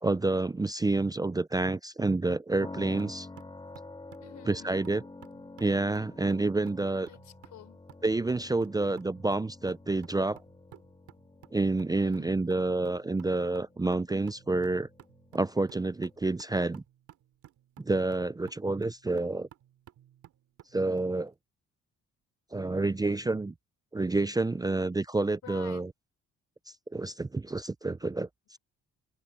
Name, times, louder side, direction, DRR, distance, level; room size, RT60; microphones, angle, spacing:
voice 1, 0.0-3.3 4.5-5.0 5.6-7.1 8.0-10.4 11.5-14.9 15.3-16.8 17.8-19.5 20.7-21.3 22.5-23.5 23.9-25.9 26.9-28.6, right 2 dB, 15° right, 0.5 m, -29 dB
sound 1, 2.6-16.4, left 2 dB, 15° left, 2.9 m, -49 dB
sound 2, 3.0-21.1, right 12 dB, 80° right, 2.7 m, -56 dB
voice 2, 4.2-4.8 7.1-7.8 12.0-12.4 25.4-25.8, left 12 dB, 75° left, 4.1 m, -49 dB
cardioid pair, 90°, 30 cm